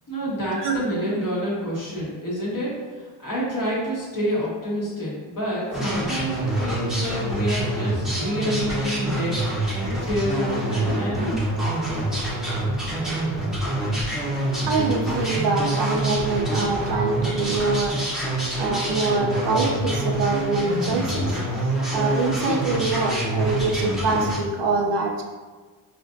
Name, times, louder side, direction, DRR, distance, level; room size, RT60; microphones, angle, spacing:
voice 1, 0.1-9.4 10.0-11.3, equal, 40° left, -6 dB, 1.4 m, -28 dB
sound 1, 5.7-24.4, right 1 dB, ahead, 0.9 m, -26 dB
voice 2, 14.7-18.0 18.6-21.3 21.9-25.2, right 3 dB, 65° right, 2 dB, 0.6 m, -24 dB
4.3 x 2.5 x 2.5 m, 1.4 s
cardioid pair, 95°, 47 cm